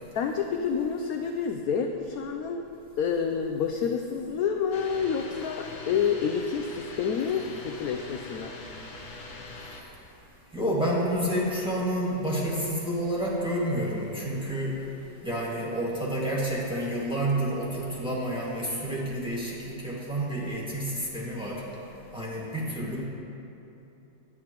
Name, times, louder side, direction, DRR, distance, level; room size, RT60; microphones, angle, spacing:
voice 1, 0.1-2.6 3.0-8.5, left 6 dB, 70° left, 4 dB, 0.8 m, -28 dB
sound 1, 4.7-9.8, left 3 dB, 50° left, 1.4 m, -42 dB
voice 2, 10.5-14.8 15.2-21.6 22.1-23.0, right 1 dB, 5° right, -6 dB, 1.8 m, -29 dB
17.0 x 9.9 x 3.0 m, 3.0 s
omnidirectional pair, 2.0 m